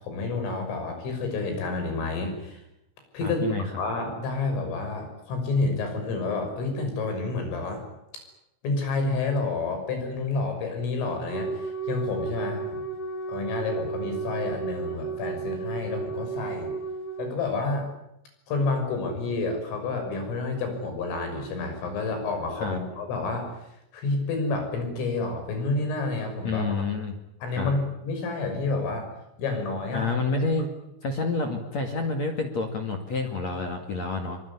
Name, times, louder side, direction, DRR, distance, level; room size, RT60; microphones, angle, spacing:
voice 1, 0.0-2.6 3.1-7.8 8.6-12.8 13.3-16.7 17.2-17.9 18.5-23.5 23.9-26.9 27.4-29.1 29.4-30.1 30.4-30.5, left 3 dB, 80° left, 5 dB, 8.9 m, -29 dB
voice 2, 3.2-3.7 22.6-22.8 26.4-27.2 27.5-27.7 29.9-30.7 31.0-34.4, left 3 dB, 45° left, 4 dB, 2.7 m, -28 dB
Wind instrument woodwind instrument, 11.3-17.4, right 5 dB, 10° left, 6.8 m, -33 dB
24.0 x 23.5 x 9.9 m, 0.85 s
omnidirectional pair, 5.7 m